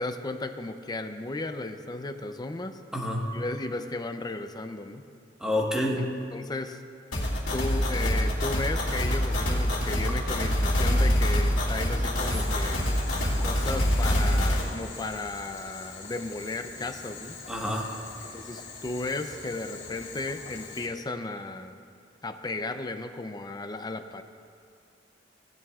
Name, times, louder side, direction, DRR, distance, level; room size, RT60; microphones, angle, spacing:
voice 1, 0.0-2.8 3.3-5.0 6.0-6.1 6.3-6.8 7.5-13.0 13.4-17.4 18.3-21.8 22.2-24.2, left 2 dB, 20° left, 7 dB, 0.5 m, -35 dB
voice 2, 2.9-3.3 5.4-6.1 10.1-10.2 17.5-17.9, left 1 dB, 5° right, -2 dB, 1.3 m, -28 dB
sound 1, 7.1-14.6, equal, 90° left, 2.3 m, -25 dB
Boiling, 12.2-20.9, left 4 dB, 75° left, 2.4 m, -44 dB
16.5 x 10.5 x 2.4 m, 2.4 s
head